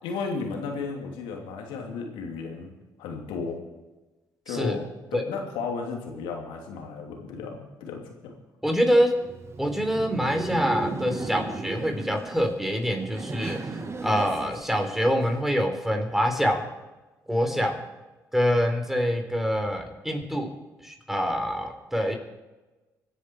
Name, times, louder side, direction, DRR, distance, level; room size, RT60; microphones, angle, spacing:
voice 1, 0.0-2.7 3.0-3.6 4.5-8.3 17.5-17.6, left 5 dB, 80° left, 1 dB, 2.9 m, -34 dB
voice 2, 4.5-4.8 5.1-5.2 8.6-9.1 9.6-13.6 14.0-16.6 17.3-17.7 18.3-20.5 20.8-22.2, equal, 5° right, 3 dB, 4.1 m, -25 dB
Laughter, 9.1-15.4, right 3 dB, 30° right, 1.7 m, -36 dB
25.5 x 10.0 x 4.6 m, 1.1 s
hypercardioid pair, 55°, 9 cm